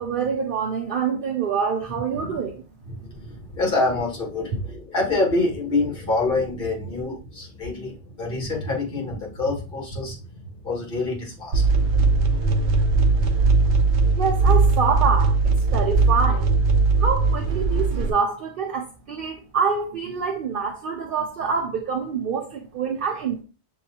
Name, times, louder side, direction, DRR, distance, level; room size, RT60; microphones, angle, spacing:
voice 1, 0.0-2.6 14.2-16.6 17.0-23.4, right 6 dB, 60° right, 0.7 m, -26 dB
voice 2, 2.9-10.2 10.6-11.6, left 2 dB, 50° left, 1.6 m, -26 dB
sound 1, 11.5-18.1, right 3 dB, 85° right, 0.9 m, -19 dB
6.3 x 2.3 x 2.8 m
omnidirectional pair, 1.1 m